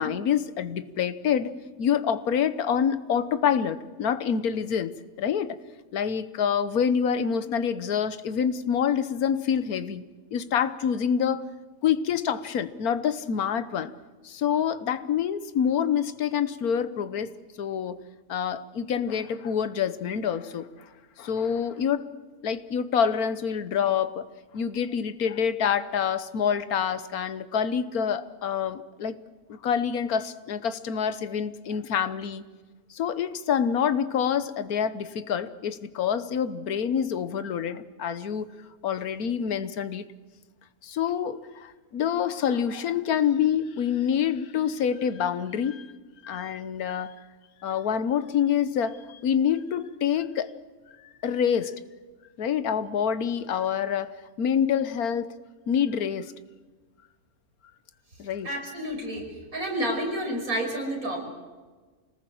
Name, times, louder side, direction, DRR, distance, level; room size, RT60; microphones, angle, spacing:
voice 1, 0.0-4.9 5.2-5.6 5.9-10.0 10.3-11.5 11.8-13.9 14.2-17.3 17.6-18.0 18.3-20.7 21.2-22.1 22.4-24.3 24.5-29.2 29.5-32.4 32.9-38.5 38.8-40.0 40.8-45.9 46.2-47.1 47.6-50.5 51.2-51.8 52.4-54.1 54.4-55.3 55.7-56.3 58.2-58.5, left 8 dB, 75° left, 13 dB, 1.5 m, -26 dB
voice 2, 58.4-59.2 59.5-61.2, right 1 dB, 70° right, 0 dB, 6.4 m, -29 dB
25.5 x 19.5 x 7.7 m, 1.3 s
omnidirectional pair, 1.6 m